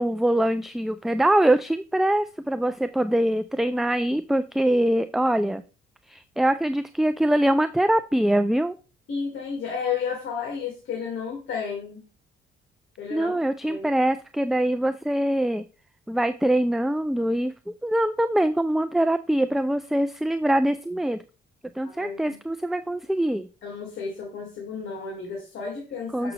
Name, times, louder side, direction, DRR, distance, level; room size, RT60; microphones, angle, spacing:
voice 1, 0.0-5.6 6.1-8.7 13.1-15.6 16.1-21.2 21.7-23.5 26.1-26.3, right 1 dB, ahead, 11 dB, 0.4 m, -23 dB
voice 2, 9.1-12.0 13.0-13.4 13.7-13.9 21.8-22.3 23.6-26.3, left 6 dB, 75° left, -2 dB, 2.3 m, -32 dB
7.1 x 6.0 x 3.3 m, 0.34 s
cardioid pair, 90°, 20 cm